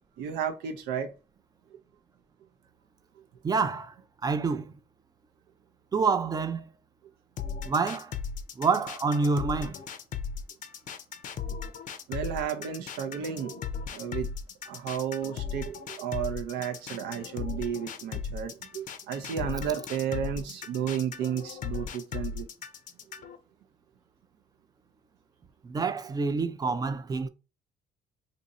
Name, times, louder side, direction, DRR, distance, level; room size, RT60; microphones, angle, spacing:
voice 1, 0.2-1.1 12.1-13.6 13.9-14.3 14.7-22.5, right 8 dB, 85° right, 0.5 m, -33 dB
voice 2, 3.4-3.9 4.2-4.7 5.9-6.6 7.7-8.1 8.6-9.7 25.6-27.3, right 4 dB, 25° right, 0.4 m, -27 dB
sound 1, 7.4-23.4, left 6 dB, 50° left, 0.5 m, -37 dB
2.7 x 2.6 x 4.0 m
cardioid pair, 110°, 17 cm